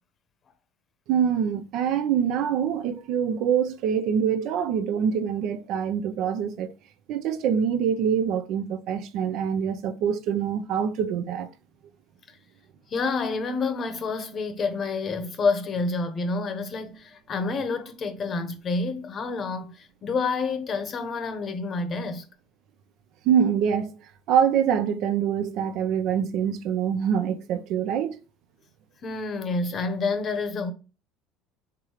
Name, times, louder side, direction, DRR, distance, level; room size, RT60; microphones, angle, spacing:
voice 1, 1.1-6.7 7.1-11.5 23.3-23.9 24.3-28.2, right 8 dB, 65° right, 0.5 m, -25 dB
voice 2, 12.9-22.2 29.0-30.7, left 4 dB, 35° left, 0.8 m, -28 dB
4.7 x 3.7 x 2.9 m
supercardioid pair, 115°, 0 cm